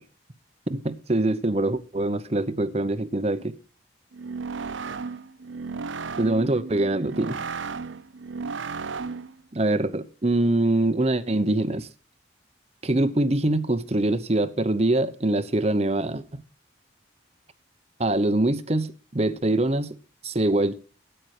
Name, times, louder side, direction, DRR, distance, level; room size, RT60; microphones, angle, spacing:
voice 1, 0.7-3.5 6.2-7.4 9.5-11.9 12.8-16.4 18.0-20.0 20.2-20.7, right 2 dB, 30° right, 0.8 m, -24 dB
sound 1, 4.1-9.4, right 4 dB, 80° right, 0.6 m, -34 dB
13.5 x 9.0 x 4.9 m
head